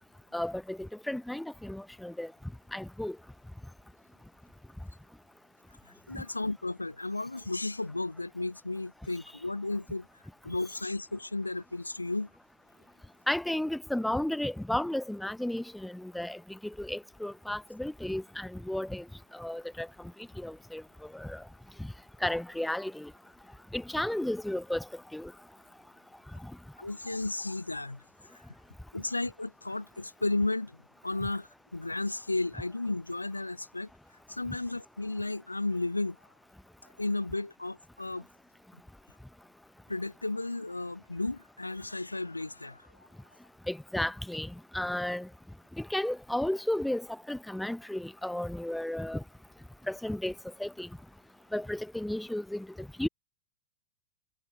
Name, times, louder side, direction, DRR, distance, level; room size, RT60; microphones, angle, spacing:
voice 1, 0.3-2.3 2.7-3.2 6.1-6.2 13.3-19.0 19.3-19.9 20.4-20.8 21.1-21.4 21.8-21.9 22.2-23.1 23.7-25.3 26.4-26.5 43.7-45.3 45.8-49.2 49.9-50.3 50.6-50.9 51.5-53.1, left 1 dB, 5° left, 6.8 m, -33 dB
voice 2, 6.1-10.1 10.4-12.3 26.8-28.0 28.9-30.8 31.0-33.9 34.3-36.2 37.0-38.3 39.9-42.9, left 2 dB, 85° left, 4.2 m, -33 dB
figure-of-eight pair, 90°, 0 cm